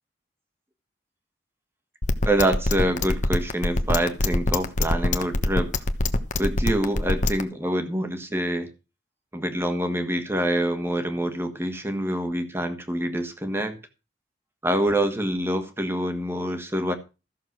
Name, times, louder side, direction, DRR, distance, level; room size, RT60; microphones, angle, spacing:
sound 1, 2.0-7.4, left 2 dB, 45° left, 1.1 m, -22 dB
voice 1, 2.3-5.7 6.4-8.7 9.3-13.8 14.6-16.9, right 1 dB, 15° right, 8 dB, 1.6 m, -26 dB
13.5 x 6.9 x 6.1 m, 0.30 s
head